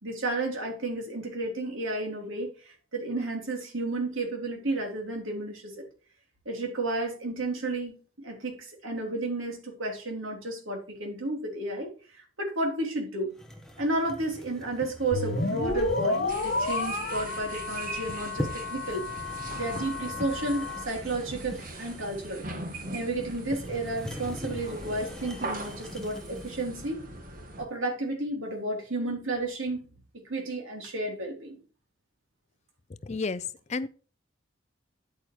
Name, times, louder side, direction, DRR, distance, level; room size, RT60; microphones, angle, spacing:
voice 1, 0.0-5.8 6.4-13.4 13.8-19.0 19.5-22.5 22.9-27.0 27.6-29.8 30.2-31.6, right 2 dB, 80° right, 3.3 m, -32 dB
sound 1, 13.4-26.7, equal, 5° left, 1.2 m, -42 dB
sound 2, 15.1-20.8, left 2 dB, 50° left, 2.9 m, -31 dB
sound 3, 16.3-27.6, right 2 dB, 40° right, 1.8 m, -41 dB
voice 2, 33.0-33.9, left 4 dB, 35° left, 0.4 m, -32 dB
9.8 x 8.6 x 3.1 m
head